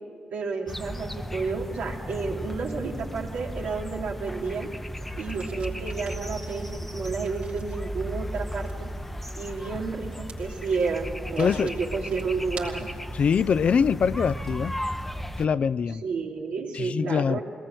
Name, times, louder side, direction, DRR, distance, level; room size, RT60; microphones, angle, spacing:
voice 1, 0.3-4.7 5.1-8.9 9.4-12.9 16.0-17.4, right 4 dB, 85° right, -1 dB, 3.0 m, -31 dB
sound 1, 0.7-15.5, equal, 5° left, 0.8 m, -35 dB
sound 2, 5.2-13.1, right 5 dB, 60° right, 3.2 m, -49 dB
voice 2, 11.4-11.7 13.1-14.8 15.4-16.0 16.7-17.4, left 6 dB, 55° left, 18 dB, 0.5 m, -23 dB
23.0 x 18.5 x 7.8 m, 2.4 s
cardioid pair, 105°, 3 cm